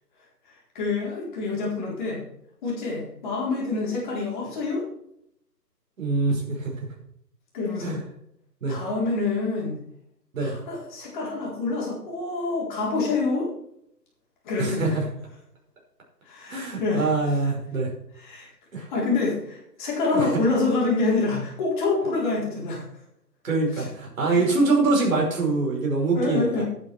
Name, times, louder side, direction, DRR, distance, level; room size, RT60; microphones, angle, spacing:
voice 1, 0.7-2.2 2.6-4.8 7.5-8.0 8.7-9.8 10.4-13.5 14.4-15.0 16.3-17.1 18.1-18.5 18.8-22.8 23.7-23.9 24.3-24.5 26.1-26.6, left 3 dB, 30° left, -4 dB, 4.2 m, -26 dB
voice 2, 6.0-6.7 7.8-8.0 8.6-8.8 10.3-10.5 14.6-15.0 16.5-17.9 18.7-18.9 20.1-20.4 23.4-26.6, right 3 dB, 55° right, -1 dB, 5.5 m, -24 dB
11.0 x 8.8 x 4.6 m, 0.73 s
figure-of-eight pair, 155°, 49 cm